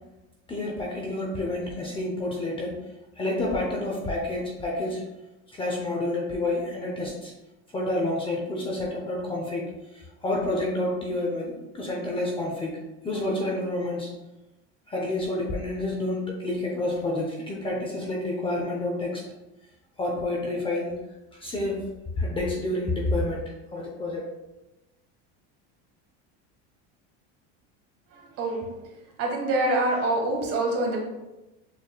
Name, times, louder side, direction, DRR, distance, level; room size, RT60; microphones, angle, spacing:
voice 1, 0.5-2.7 3.2-5.0 5.5-7.3 7.7-9.7 10.2-12.8 13.0-14.1 14.9-19.2 20.0-21.0 21.4-21.9 22.2-23.4 23.7-24.2, left 2 dB, 15° left, -2 dB, 0.5 m, -29 dB
voice 2, 29.2-31.0, right 2 dB, 45° right, 0 dB, 1.2 m, -25 dB
6.5 x 3.3 x 2.2 m, 1.0 s
cardioid pair, 150°, 34 cm